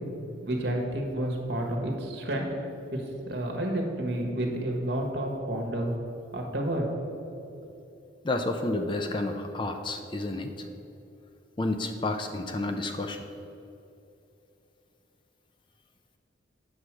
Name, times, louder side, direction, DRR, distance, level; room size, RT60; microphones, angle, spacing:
voice 1, 0.4-2.5 2.9-5.9 6.3-6.8 7.3-7.4, right 1 dB, 60° right, 1 dB, 1.5 m, -30 dB
voice 2, 8.2-10.6 11.6-13.2, left 2 dB, 25° left, 6 dB, 0.4 m, -30 dB
8.2 x 4.8 x 7.4 m, 2.9 s
head